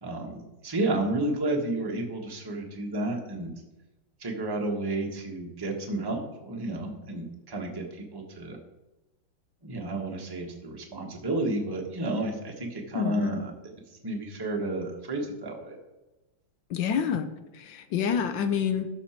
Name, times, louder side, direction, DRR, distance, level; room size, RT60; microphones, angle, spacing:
voice 1, 0.0-3.5 4.2-8.6 9.6-13.7 14.0-15.8, right 2 dB, 15° right, 0 dB, 1.1 m, -31 dB
voice 2, 12.9-13.4 16.7-18.9, left 7 dB, 70° left, 10 dB, 1.3 m, -28 dB
12.5 x 5.9 x 4.4 m, 1.0 s
omnidirectional pair, 2.4 m